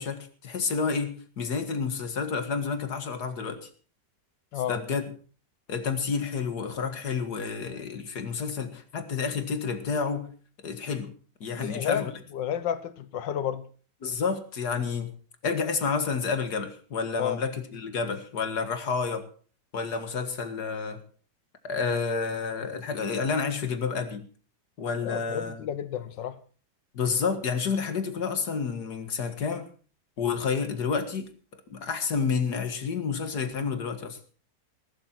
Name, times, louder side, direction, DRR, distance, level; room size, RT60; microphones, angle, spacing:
voice 1, 0.0-3.7 4.7-5.0 5.7-10.3 10.6-11.1 11.4-12.1 14.0-15.1 15.4-19.2 19.7-21.0 21.6-24.3 24.8-25.6 26.9-29.7 30.2-34.2, left 5 dB, 65° left, 2.4 m, -30 dB
voice 2, 11.6-13.7 17.2-17.4 25.0-26.4, left 9 dB, 90° left, 1.8 m, -31 dB
19.0 x 12.0 x 4.5 m
omnidirectional pair, 1.9 m